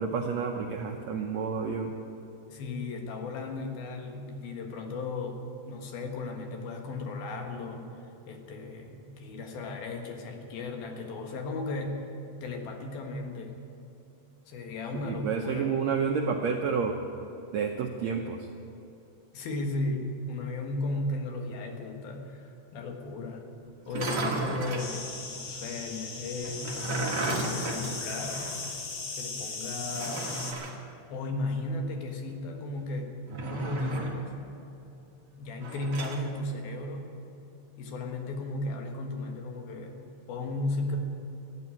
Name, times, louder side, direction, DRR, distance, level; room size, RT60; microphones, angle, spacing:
voice 1, 0.0-1.9 15.0-17.0 17.5-18.5 23.9-24.0, right 6 dB, 80° right, 3 dB, 1.5 m, -30 dB
voice 2, 2.5-12.0 12.4-13.5 14.5-15.8 19.3-23.5 23.9-26.8 27.4-28.6 29.2-30.4 31.1-33.2 33.4-34.3 35.4-37.1 37.8-41.0, left 2 dB, 80° left, 3 dB, 3.5 m, -35 dB
sound 1, 23.8-24.9 26.4-28.7 29.0-29.1 29.9-30.8 33.3-34.3 35.6-36.2, right 2 dB, 40° right, 1.7 m, -33 dB
sound 2, 24.8-30.5, left 4 dB, 50° left, 1.7 m, -38 dB
15.0 x 9.6 x 9.5 m, 2.9 s
omnidirectional pair, 4.2 m